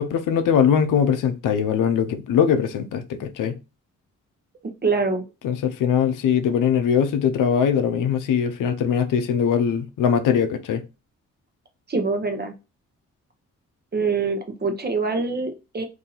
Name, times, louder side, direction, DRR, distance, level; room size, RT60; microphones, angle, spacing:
voice 1, 0.0-3.6 5.4-10.8, left 7 dB, 80° left, 0.6 m, -21 dB
voice 2, 4.8-5.2 11.9-12.5 13.9-15.8, right 4 dB, 30° right, 0.8 m, -24 dB
2.7 x 2.7 x 3.9 m
cardioid pair, 65°, 31 cm